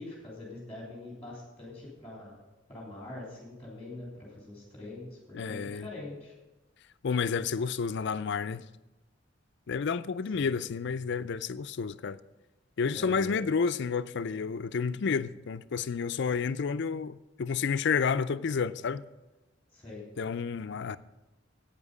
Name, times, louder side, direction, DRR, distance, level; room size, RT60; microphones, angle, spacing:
voice 1, 0.0-2.4 2.7-6.3 10.3-10.6 12.9-13.4 19.7-20.0, left 2 dB, 10° left, 3.2 m, -43 dB
voice 2, 5.3-5.9 7.0-8.6 9.7-12.2 12.8-19.1 20.2-21.0, left 5 dB, 60° left, 0.4 m, -30 dB
11.0 x 8.9 x 4.9 m
head